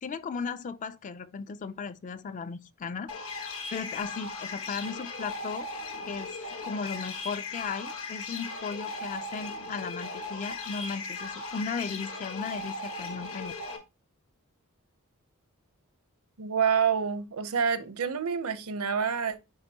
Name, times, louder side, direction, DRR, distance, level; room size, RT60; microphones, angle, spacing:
voice 1, 0.0-3.1 3.7-5.7 6.1-6.3 6.6-13.5, left 5 dB, 35° left, 0.4 m, -36 dB
sound 1, 3.1-13.8, left 3 dB, 70° left, 1.4 m, -38 dB
voice 2, 16.4-19.4, right 7 dB, 75° right, 0.7 m, -27 dB
9.4 x 3.7 x 2.8 m
head